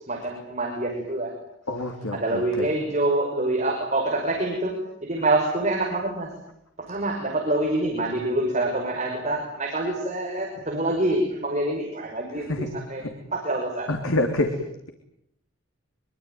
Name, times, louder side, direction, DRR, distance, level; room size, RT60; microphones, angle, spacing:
voice 1, 0.1-1.3 2.1-6.3 6.8-12.5 12.9-13.0 13.3-13.9, right 2 dB, 35° right, -1 dB, 5.6 m, -26 dB
voice 2, 1.7-2.7 12.3-12.7 13.0-13.1 13.9-14.9, left 2 dB, 90° left, 4 dB, 3.4 m, -27 dB
25.0 x 24.5 x 9.4 m, 0.73 s
head